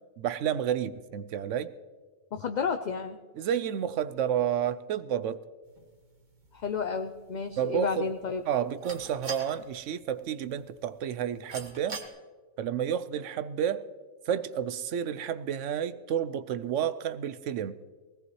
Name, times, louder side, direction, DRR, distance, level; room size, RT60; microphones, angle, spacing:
voice 1, 0.2-1.7 3.4-5.4 7.6-8.1 8.5-12.0 12.6-13.9 14.3-17.8, right 9 dB, 80° right, 14 dB, 1.0 m, -30 dB
voice 2, 2.3-3.2 6.5-8.4, left 5 dB, 50° left, 7 dB, 0.5 m, -31 dB
sound 1, 5.6-12.1, right 4 dB, 40° right, 1.4 m, -46 dB
20.0 x 17.5 x 3.1 m, 1.5 s
omnidirectional pair, 1.3 m